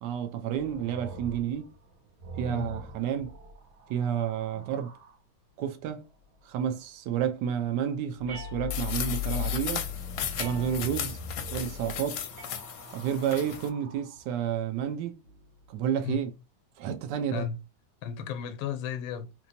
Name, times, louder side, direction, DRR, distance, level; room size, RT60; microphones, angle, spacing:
voice 1, 0.0-1.7 2.4-3.3 3.9-4.9 5.6-6.1 6.4-9.9 10.4-11.2 11.5-12.3 12.9-15.2 15.7-16.3 16.8-17.5, right 9 dB, 70° right, 1.2 m, -30 dB
sound 1, 0.6-5.2 8.2-14.3 15.2-15.9, left 7 dB, 90° right, 1.5 m, -40 dB
voice 2, 2.4-2.8 4.5-4.7 16.0-16.2 17.3-17.6 18.0-19.3, left 7 dB, 85° left, 1.4 m, -34 dB
Glass Vase Tail (Accoustic), 8.3-9.2 10.3-11.2 12.4-13.2, right 2 dB, 40° right, 1.0 m, -47 dB
sound 2, 8.7-13.7, left 8 dB, 70° left, 1.1 m, -36 dB
3.4 x 3.0 x 2.7 m
omnidirectional pair, 2.1 m